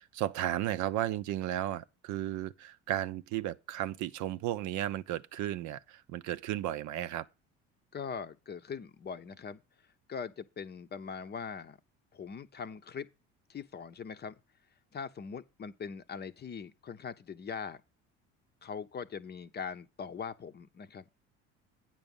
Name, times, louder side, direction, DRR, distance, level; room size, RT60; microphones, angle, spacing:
voice 1, 0.0-7.3, right 12 dB, 60° right, 0.6 m, -34 dB
voice 2, 7.9-9.6 10.1-11.8 12.1-13.1 13.5-14.4 14.9-17.8 18.6-21.1, left 6 dB, 30° left, 0.7 m, -41 dB
8.9 x 6.1 x 5.3 m
supercardioid pair, 80°, 32 cm